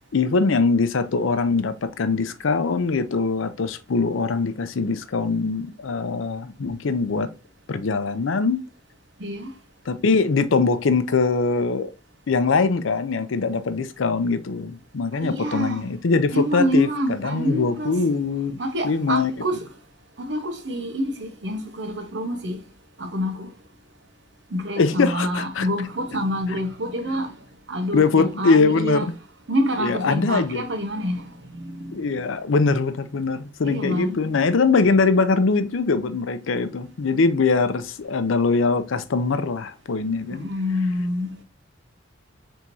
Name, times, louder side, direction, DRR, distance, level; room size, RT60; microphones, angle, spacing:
voice 1, 0.1-7.3 7.7-8.6 9.9-11.9 12.3-19.3 24.8-25.7 27.9-29.1 29.8-30.6 31.9-40.5, left 4 dB, 80° left, 0.5 m, -22 dB
voice 2, 9.2-9.5 15.2-15.8 16.3-17.9 18.6-19.6 20.2-22.6 23.0-23.5 24.5-27.3 27.7-29.1 29.5-32.3 33.7-34.3 40.3-41.4, equal, 60° right, 1.0 m, -27 dB
4.4 x 3.5 x 2.6 m
head